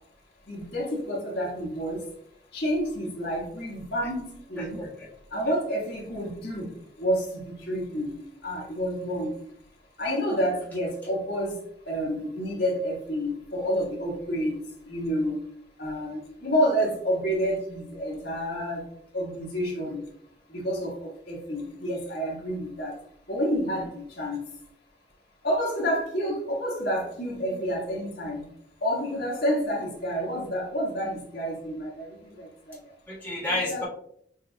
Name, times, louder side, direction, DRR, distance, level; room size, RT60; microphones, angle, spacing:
voice 1, 0.5-2.0 2.5-4.8 5.3-8.1 8.4-9.3 10.0-11.6 11.9-14.6 14.9-15.4 15.8-18.8 19.1-20.0 20.5-23.0 23.3-24.4 25.4-28.4 28.8-32.1 32.3-32.8 33.7-33.8, equal, 65° left, -3 dB, 1.5 m, -29 dB
voice 2, 4.6-5.1 33.1-33.8, left 2 dB, 10° left, -8 dB, 1.6 m, -31 dB
6.4 x 2.7 x 2.3 m, 0.68 s
head